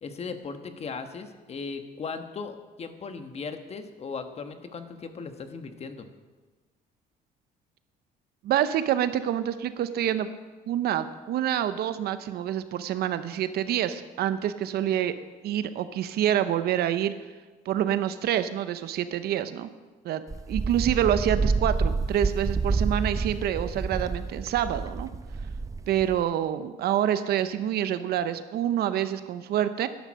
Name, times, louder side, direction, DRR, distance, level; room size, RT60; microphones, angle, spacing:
voice 1, 0.0-6.1, left 5 dB, 40° left, 8 dB, 1.3 m, -37 dB
voice 2, 8.4-10.3 10.7-15.1 15.4-17.1 17.7-19.7 20.0-20.2 20.5-25.1 25.9-29.9, right 10 dB, 70° right, 12 dB, 0.8 m, -27 dB
Wind, 20.3-26.2, right 4 dB, 20° right, 0.8 m, -28 dB
11.5 x 11.0 x 6.4 m, 1.3 s
cardioid pair, 110°, 17 cm